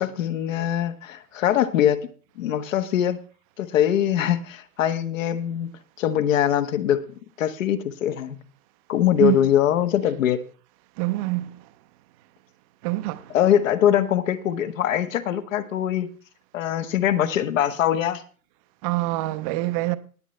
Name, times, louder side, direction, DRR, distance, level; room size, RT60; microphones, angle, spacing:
voice 1, 0.0-2.1 2.4-3.2 3.6-5.7 6.0-7.0 7.4-8.4 8.9-10.4 13.3-16.1 16.5-18.2, left 10 dB, 60° left, 1.3 m, -22 dB
voice 2, 11.0-11.5 12.8-13.3 18.8-20.0, right 19 dB, 25° right, 0.5 m, -25 dB
19.5 x 7.8 x 3.2 m
hypercardioid pair, 135°, 44 cm